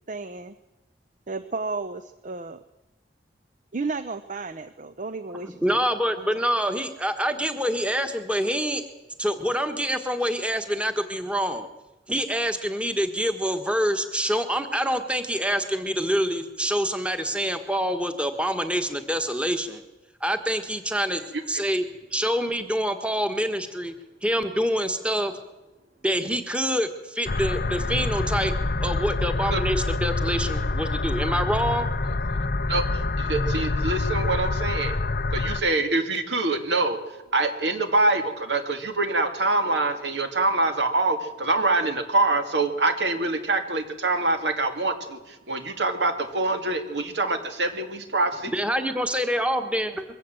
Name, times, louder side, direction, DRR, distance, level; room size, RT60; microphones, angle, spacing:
voice 1, 0.1-0.5 1.3-2.6 3.7-5.8 6.2-6.3, right 3 dB, 45° right, 11 dB, 0.8 m, -33 dB
voice 2, 5.4-8.8 9.2-11.7 12.1-19.8 20.2-21.2 21.5-21.8 22.1-23.9 24.2-25.3 26.0-28.5 28.8-31.9 48.5-50.0, equal, 5° right, 7 dB, 1.5 m, -26 dB
sound 1, 27.3-35.6, left 2 dB, 55° left, 0.8 m, -26 dB
voice 3, 32.7-35.0 35.3-37.0 37.3-48.5, right 2 dB, 75° right, 6 dB, 2.5 m, -25 dB
22.5 x 16.5 x 7.9 m, 1.0 s
head